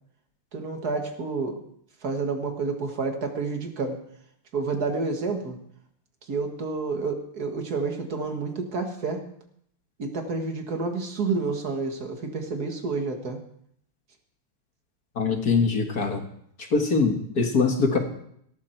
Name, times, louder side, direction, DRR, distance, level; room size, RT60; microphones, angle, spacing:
voice 1, 0.5-1.6 2.0-4.0 4.5-5.6 6.2-9.2 10.0-13.4, right 4 dB, 45° right, 5 dB, 2.1 m, -29 dB
voice 2, 15.2-16.2 16.7-18.0, left 4 dB, 45° left, 4 dB, 1.9 m, -23 dB
16.5 x 13.5 x 4.5 m, 0.69 s
omnidirectional pair, 2.4 m